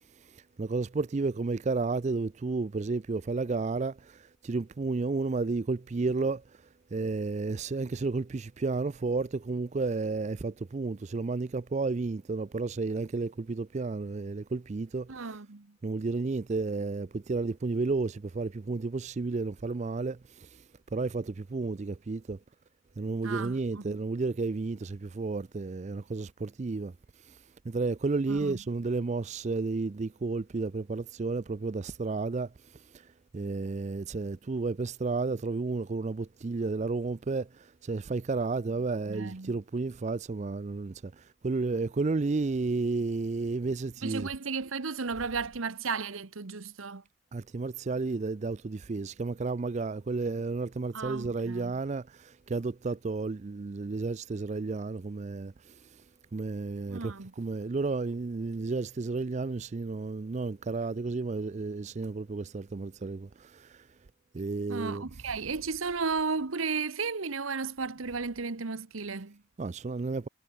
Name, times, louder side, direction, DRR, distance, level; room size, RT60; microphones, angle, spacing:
voice 1, 0.3-6.4 6.9-15.4 15.8-20.6 20.9-22.4 23.0-26.9 27.3-27.4 27.7-32.5 32.9-33.0 33.3-44.3 47.3-55.8 56.3-63.8 64.3-65.1 69.6-70.3, right 3 dB, 35° right, 0.4 m, -32 dB
voice 2, 15.1-15.7 23.2-24.0 28.3-28.6 39.1-39.5 44.0-47.0 50.9-51.7 56.9-57.3 64.7-69.4, right 4 dB, 80° right, 1.1 m, -34 dB
head